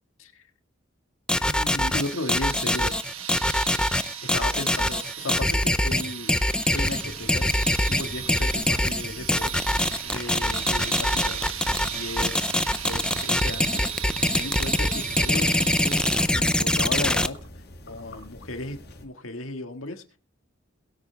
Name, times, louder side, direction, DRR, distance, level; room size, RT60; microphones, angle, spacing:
sound 1, 1.3-17.3, left 1 dB, 5° left, 0.5 m, -24 dB
voice 1, 1.4-3.0 4.3-6.3 6.7-7.4 7.9-9.5 10.0-12.5 12.8-16.1 16.3-17.4 17.8-20.2, left 2 dB, 85° left, 6 dB, 1.9 m, -35 dB
sound 2, 1.8-16.6, right 10 dB, 90° right, 1.3 m, -36 dB
sound 3, 6.7-19.1, left 1 dB, 55° left, 5.2 m, -44 dB
22.5 x 8.5 x 3.5 m, 0.35 s
head